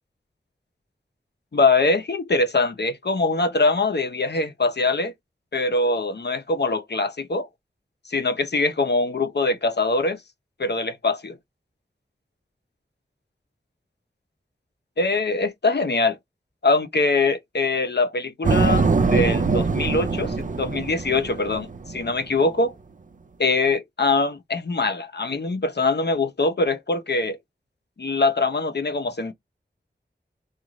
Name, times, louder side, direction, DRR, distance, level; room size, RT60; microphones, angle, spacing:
voice 1, 1.5-5.1 5.5-7.5 8.1-10.2 10.6-11.4 15.0-16.2 16.6-22.7 23.4-27.4 28.0-29.3, left 3 dB, 60° left, 0.7 m, -23 dB
sound 1, 18.4-22.2, right 4 dB, 45° right, 0.4 m, -22 dB
3.7 x 2.4 x 3.0 m
wide cardioid pair, 55°, 19 cm